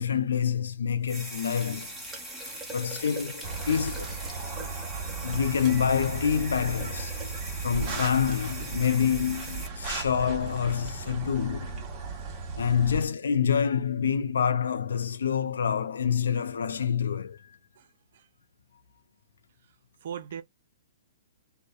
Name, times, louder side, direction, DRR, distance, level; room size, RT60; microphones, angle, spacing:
voice 1, 0.0-1.9 2.7-4.1 5.2-7.2 7.6-11.8 12.6-17.4, left 7 dB, 85° left, 0.4 m, -27 dB
sound 1, 1.0-9.7, right 1 dB, ahead, 0.8 m, -41 dB
sound 2, 3.4-13.1, right 4 dB, 25° right, 0.7 m, -36 dB
voice 2, 17.8-18.3 20.0-20.4, right 8 dB, 60° right, 0.6 m, -39 dB
2.7 x 2.1 x 2.3 m
hypercardioid pair, 145°, 0 cm